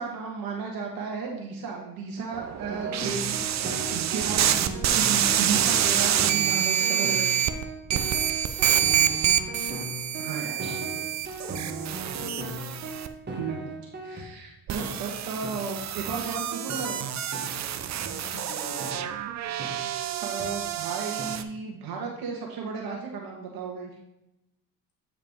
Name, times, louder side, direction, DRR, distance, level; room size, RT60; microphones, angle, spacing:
voice 1, 0.0-7.3 10.2-10.8 13.4-13.6 14.0-17.0 20.2-23.9, right 5 dB, 65° right, -1 dB, 1.5 m, -34 dB
sound 1, 2.3-7.6 7.9-13.1 14.7-21.4, right 10 dB, 45° right, 0.6 m, -27 dB
sound 2, 2.7-14.3 14.8-14.9 15.4-15.6 16.1-16.2 16.7-16.8 17.3-17.5 18.0-18.1 18.8-18.9 19.6-19.7 20.4-20.5 21.2-21.3, right 2 dB, 30° right, 1.7 m, -37 dB
voice 2, 8.4-9.2 10.6-11.1 11.6-12.4 18.1-19.1, left 4 dB, 65° left, 1 dB, 2.0 m, -45 dB
8.6 x 4.8 x 3.6 m, 0.89 s
supercardioid pair, 90°, 38 cm